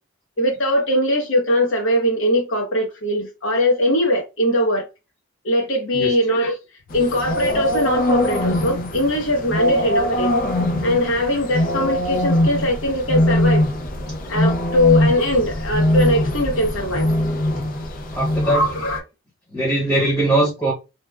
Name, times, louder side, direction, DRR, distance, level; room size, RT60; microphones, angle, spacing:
voice 1, 0.4-4.9 5.4-6.6 6.9-10.3 10.8-13.7 14.3-17.1 18.4-19.0, left 1 dB, 75° left, 1.0 m, -20 dB
sound 1, 6.9-19.0, left 1 dB, 45° left, 0.5 m, -22 dB
voice 2, 18.1-18.6 19.5-20.7, right 1 dB, 15° left, 0.9 m, -20 dB
3.1 x 2.1 x 2.3 m
head